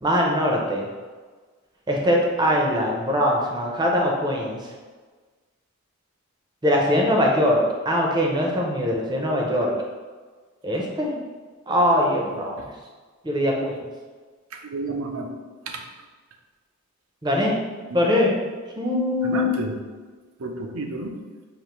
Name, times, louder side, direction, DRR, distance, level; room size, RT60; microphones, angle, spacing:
voice 1, 0.0-0.9 1.9-4.6 6.6-9.7 10.6-11.1 11.7-12.6 13.2-13.8 17.2-17.6 17.9-18.3 18.8-19.5, equal, 20° right, -1 dB, 0.6 m, -22 dB
voice 2, 14.5-15.3 15.7-15.8 17.9-18.0 19.2-19.7 20.4-21.1, right 2 dB, 75° right, 3 dB, 0.5 m, -30 dB
5.1 x 2.6 x 3.0 m, 1.4 s
head